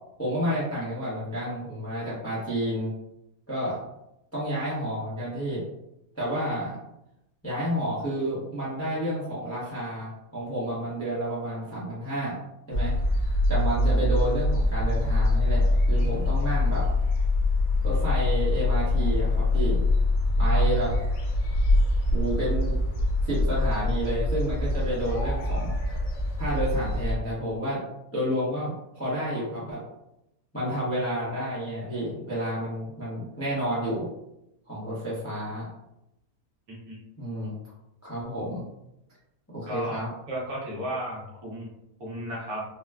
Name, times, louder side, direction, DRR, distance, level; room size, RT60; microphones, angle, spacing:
voice 1, 0.2-2.9 3.5-3.8 4.3-5.6 6.1-6.8 7.4-12.4 12.7-12.9 13.5-16.8 17.8-19.8 20.4-20.9 22.1-22.7 23.2-25.7 26.4-27.8 28.1-29.8 30.5-34.1 34.7-35.7 37.2-37.5 38.0-38.7 39.5-40.1, equal, 15° left, -8 dB, 0.6 m, -30 dB
sound 1, 12.7-27.2, left 2 dB, 70° left, 0.9 m, -24 dB
voice 2, 36.7-37.0 39.7-40.0 40.3-41.7 42.0-42.6, equal, 60° right, -4 dB, 1.3 m, -34 dB
3.8 x 2.2 x 2.2 m, 0.84 s
omnidirectional pair, 1.8 m